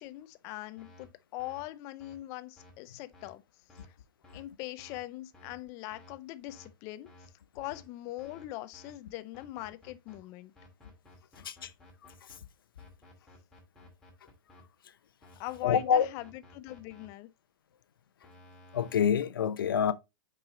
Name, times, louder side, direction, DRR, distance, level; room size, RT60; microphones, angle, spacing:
voice 1, 0.0-3.4 4.3-7.1 7.5-10.5 15.4-17.3, left 17 dB, 30° left, 0.5 m, -41 dB
sound 1, 0.8-1.1 1.4-1.6 2.0-2.1 2.6-2.7 3.1-3.3 3.7-3.9 4.2-4.4 4.8-5.0 5.3-5.5 5.9-6.1 6.5-6.7 7.0-7.3 7.6-7.8 8.2-8.5 8.7-8.9 9.3-10.2 10.5-12.4 12.8-14.6 15.2-17.1 18.2-19.1, left 1 dB, 5° left, 2.1 m, -56 dB
voice 2, 15.6-16.1 18.7-19.9, left 8 dB, 85° left, 0.7 m, -26 dB
5.9 x 4.7 x 3.7 m
hypercardioid pair, 160°, 11 cm